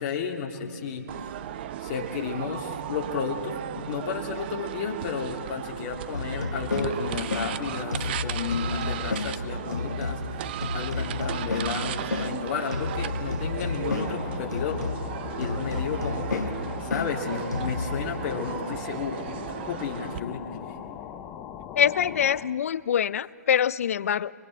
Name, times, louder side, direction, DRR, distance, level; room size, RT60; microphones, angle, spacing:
voice 1, 0.0-1.4 1.8-14.8 15.4-16.4 16.8-20.7, left 6 dB, 35° left, 1 dB, 2.0 m, -32 dB
sound 1, 1.1-20.2, right 11 dB, 35° right, 0.5 m, -36 dB
sound 2, 6.1-18.0, left 3 dB, 85° left, 1.1 m, -32 dB
sound 3, 13.7-22.6, left 9 dB, 20° left, 0.7 m, -40 dB
voice 2, 21.7-24.3, left 9 dB, 55° left, 20 dB, 0.4 m, -24 dB
28.5 x 22.5 x 4.3 m, 2.7 s
figure-of-eight pair, 135°, 9 cm